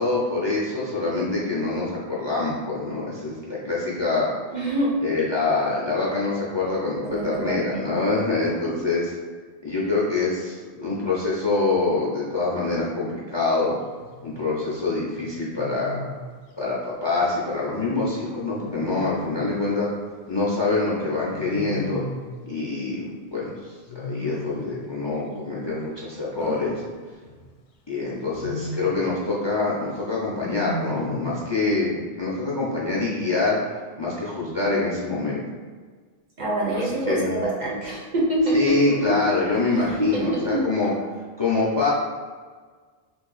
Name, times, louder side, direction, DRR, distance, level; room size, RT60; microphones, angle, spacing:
voice 1, 0.0-4.3 5.0-9.1 9.6-13.8 14.2-15.9 16.6-19.9 20.3-22.0 22.5-26.8 27.9-33.6 34.0-35.4 36.7-37.4 38.5-40.9 41.4-41.9, left 3 dB, 35° left, -6 dB, 0.5 m, -25 dB
voice 2, 4.5-5.0 7.0-7.9 36.4-38.6 38.9-39.2 39.8-40.6, right 1 dB, 50° right, -4 dB, 0.7 m, -25 dB
Wild animals, 14.0-14.4 15.6-16.3 18.6-19.5 21.3-22.4 23.9-24.8 26.4-27.5 28.2-29.1 30.4-31.4, left 2 dB, 70° left, 0.7 m, -35 dB
2.8 x 2.5 x 3.9 m, 1.5 s
omnidirectional pair, 1.1 m